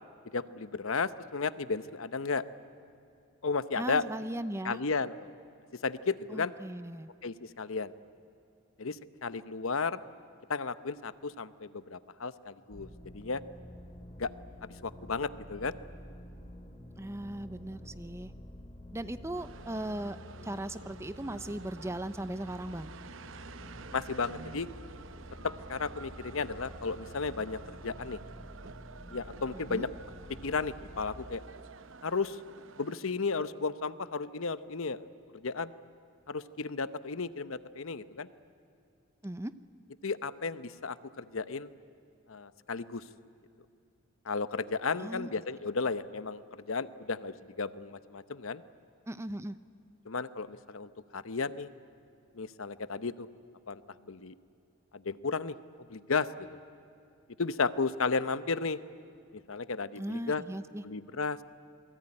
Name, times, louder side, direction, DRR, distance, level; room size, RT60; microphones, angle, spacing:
voice 1, 0.3-2.4 3.4-4.0 4.6-5.3 5.8-6.5 7.2-7.9 8.8-10.0 10.5-13.4 14.2-14.3 14.8-15.7 23.9-24.7 25.4-28.2 29.1-29.9 30.4-31.4 32.0-32.4 32.8-35.0 35.3-35.7 36.3-38.3 40.0-41.7 42.3-43.0 44.2-48.6 50.1-51.7 52.3-53.3 53.7-54.3 54.9-55.6 55.9-56.5 57.4-58.8 59.3-60.4 60.8-61.4, left 4 dB, 70° left, 14 dB, 0.8 m, -34 dB
voice 2, 3.8-4.8 6.3-7.1 17.0-18.3 18.9-20.2 20.4-22.9 29.5-29.8 39.2-39.5 45.0-45.3 49.1-49.6 60.0-60.8, right 1 dB, 10° right, 13 dB, 0.6 m, -38 dB
sound 1, 12.7-31.4, left 1 dB, 25° left, 2.4 m, -49 dB
sound 2, 19.3-33.0, right 5 dB, 60° right, 0.8 m, -50 dB
28.0 x 21.0 x 9.8 m, 2.6 s
head